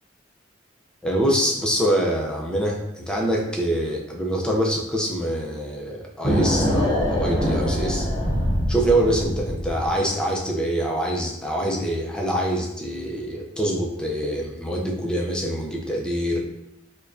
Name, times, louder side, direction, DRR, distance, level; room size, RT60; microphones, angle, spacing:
voice 1, 1.0-8.1 8.7-16.4, right 1 dB, 5° left, -1 dB, 0.5 m, -25 dB
sound 1, 6.2-9.9, equal, 25° left, 0.9 m, -23 dB
4.7 x 2.2 x 2.6 m, 0.85 s
head